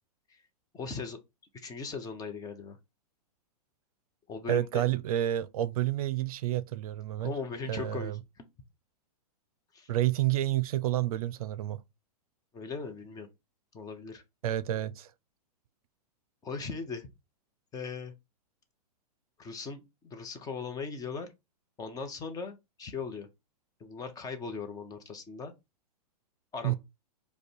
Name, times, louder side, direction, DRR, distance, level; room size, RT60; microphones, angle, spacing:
voice 1, 0.7-1.2 1.5-2.8 4.3-4.9 7.2-8.5 9.7-9.9 12.5-13.3 13.7-14.2 16.4-17.1 17.7-18.1 19.4-21.3 21.8-23.3 23.8-25.5 26.5-26.7, left 5 dB, 20° left, 0.8 m, -39 dB
voice 2, 4.5-7.3 7.7-8.2 9.9-11.8 14.4-15.1 26.6-26.7, right 13 dB, 65° right, 0.5 m, -29 dB
5.1 x 2.3 x 4.4 m
hypercardioid pair, 130°, 20 cm